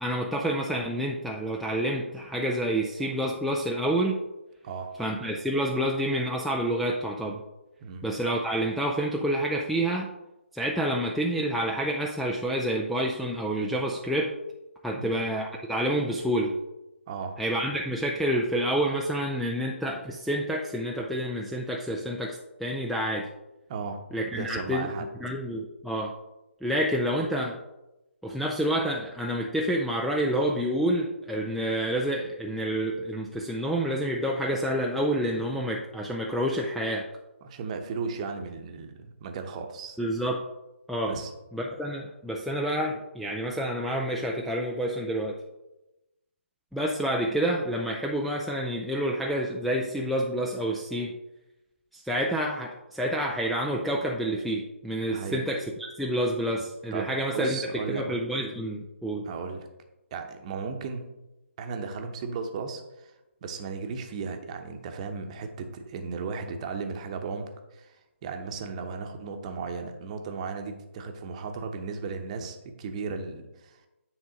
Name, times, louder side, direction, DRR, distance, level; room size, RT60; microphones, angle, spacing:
voice 1, 0.0-4.2 5.0-7.4 8.0-10.1 10.5-14.3 14.8-16.6 17.4-23.3 24.1-24.9 25.2-26.2 26.6-27.6 28.2-37.1 40.0-40.5 40.9-41.2 41.5-45.4 46.7-51.1 51.9-59.3, right 1 dB, ahead, -2 dB, 0.3 m, -28 dB
voice 2, 17.1-17.4 23.7-24.0 24.3-25.1 37.4-40.0 41.1-41.3 55.1-55.4 56.9-58.0 59.2-59.7 60.1-61.1 61.6-63.1 63.4-68.0 68.2-73.9, right 5 dB, 30° right, 5 dB, 0.9 m, -35 dB
9.3 x 3.6 x 5.0 m, 0.98 s
figure-of-eight pair, 145°, 7 cm